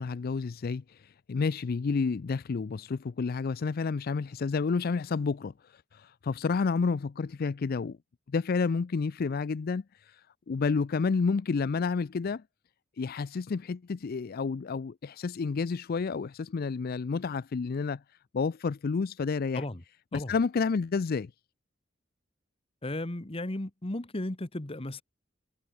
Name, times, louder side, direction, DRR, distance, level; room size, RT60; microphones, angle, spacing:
voice 1, 0.0-8.0 8.3-12.4 13.0-18.0 18.3-19.6 20.1-21.3, left 4 dB, 50° left, 0.4 m, -30 dB
voice 2, 22.8-25.0, left 1 dB, 30° left, 1.3 m, -35 dB
head